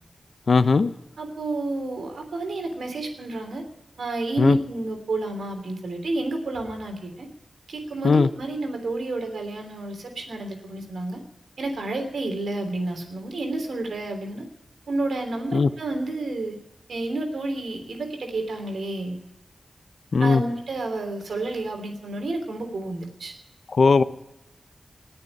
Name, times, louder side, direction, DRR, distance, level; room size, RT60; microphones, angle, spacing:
voice 1, 0.5-0.9 4.4-4.6 8.0-8.3 15.5-15.7 20.1-20.4 23.7-24.0, left 4 dB, 70° left, 12 dB, 0.9 m, -18 dB
voice 2, 1.2-3.6 4.0-7.3 7.7-11.2 11.6-14.5 14.9-16.6 16.9-19.2 20.2-23.3, right 2 dB, 85° right, 5 dB, 3.1 m, -30 dB
19.5 x 6.9 x 9.8 m, 0.89 s
cardioid pair, 40°, 0 cm